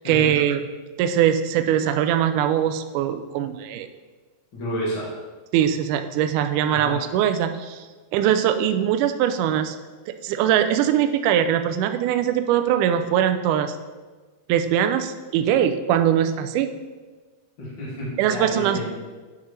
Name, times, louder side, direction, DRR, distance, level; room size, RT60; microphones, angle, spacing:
voice 1, 0.1-0.6 1.0-3.9 5.5-7.9 8.1-9.8 10.1-13.8 14.5-16.7 18.2-18.9, right 10 dB, 85° right, 8 dB, 1.8 m, -21 dB
voice 2, 4.5-5.1 6.7-7.0 17.6-18.9, equal, 40° left, -7 dB, 2.2 m, -30 dB
9.4 x 5.8 x 3.2 m, 1.4 s
omnidirectional pair, 4.0 m